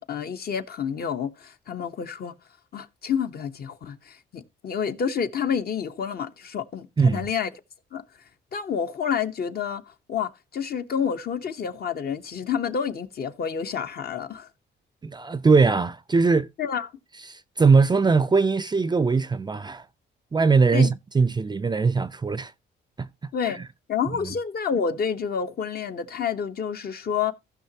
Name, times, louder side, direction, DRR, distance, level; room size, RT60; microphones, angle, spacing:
voice 1, 0.0-2.3 2.7-7.5 7.9-8.0 8.5-14.5 16.6-16.9 20.7-20.9 23.3-23.6 23.9-27.3, left 7 dB, 50° left, 1.0 m, -29 dB
voice 2, 15.0-16.5 17.3-19.9 20.3-22.5 23.0-23.6 24.2-24.3, right 4 dB, 20° right, 0.4 m, -21 dB
15.5 x 6.0 x 2.9 m
cardioid pair, 90°, 20 cm